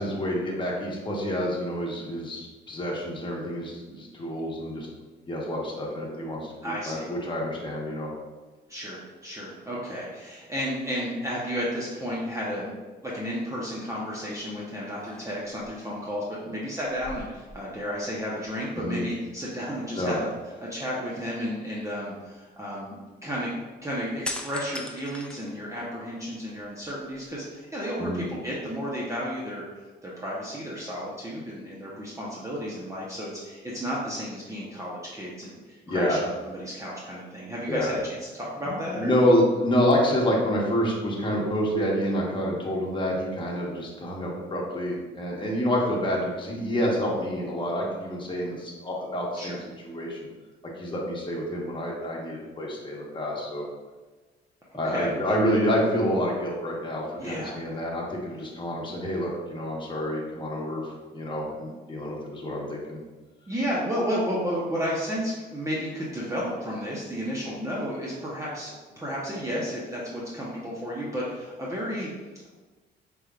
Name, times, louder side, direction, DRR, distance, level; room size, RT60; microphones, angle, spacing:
voice 1, 0.0-4.9 5.3-8.1 18.8-19.0 20.0-20.2 28.0-28.2 35.9-36.2 37.7-37.9 38.9-49.6 49.8-50.3 50.8-53.6 54.7-63.0, equal, 25° left, -3 dB, 1.2 m, -28 dB
voice 2, 6.6-7.1 8.7-12.7 13.0-20.3 20.6-39.2 49.4-49.6 54.7-55.1 57.2-57.5 63.5-72.1, equal, 15° right, -6 dB, 0.9 m, -32 dB
sound 1, 14.2-14.5 14.9-15.7 16.9-18.1 18.4-18.6 24.2-26.1 26.6-27.5, left 1 dB, 5° left, 0.4 m, -40 dB
5.3 x 3.3 x 2.4 m, 1.3 s
cardioid pair, 90°, 20 cm